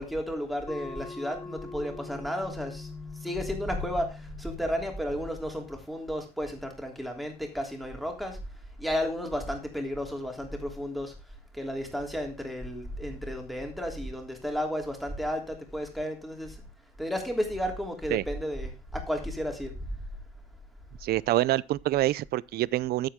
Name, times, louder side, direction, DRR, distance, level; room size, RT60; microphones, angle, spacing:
voice 1, 0.0-2.9 3.2-4.1 4.4-8.4 8.8-11.1 11.6-16.5 17.0-19.7, equal, ahead, 3.2 m, -33 dB
sound 1, 0.7-5.8, left 4 dB, 15° left, 1.4 m, -43 dB
voice 2, 21.0-23.1, right 15 dB, 65° right, 0.5 m, -26 dB
11.5 x 7.9 x 3.6 m
cardioid pair, 110°, 17 cm